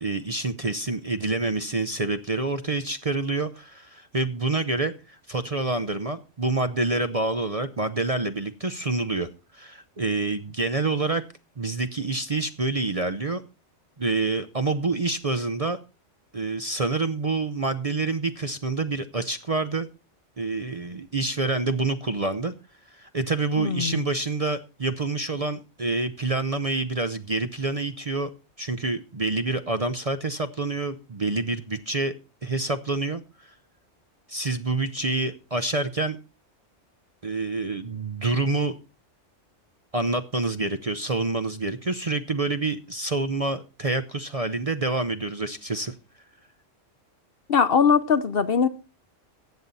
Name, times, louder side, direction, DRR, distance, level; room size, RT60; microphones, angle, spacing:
voice 1, 0.0-11.2 11.6-13.4 14.0-15.8 16.3-19.9 20.4-22.5 22.9-28.3 28.6-32.1 32.4-33.2 34.3-36.2 37.2-38.8 39.9-45.9, right 3 dB, 35° right, 0.7 m, -27 dB
voice 2, 23.6-24.0 47.5-48.7, left 6 dB, 55° left, 0.9 m, -21 dB
14.5 x 8.8 x 4.1 m
omnidirectional pair, 1.3 m